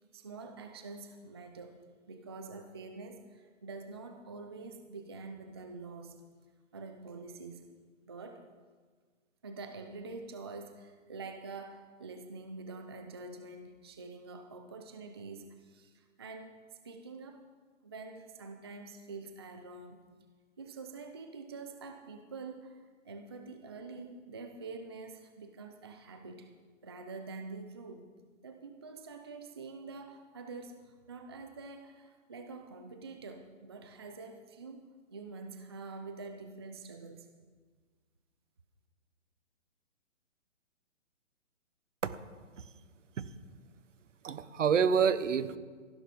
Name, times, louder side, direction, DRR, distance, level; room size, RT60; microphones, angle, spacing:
voice 1, 0.0-1.8 2.1-6.2 6.7-7.7 8.0-8.4 9.4-17.4 17.8-20.0 20.6-26.5 26.8-28.1 28.4-34.8 35.1-37.3, right 3 dB, 20° right, 6 dB, 0.4 m, -46 dB
voice 2, 44.2-45.6, right 6 dB, 65° right, 14 dB, 1.1 m, -27 dB
15.5 x 11.5 x 5.3 m, 1.5 s
hypercardioid pair, 155°, 39 cm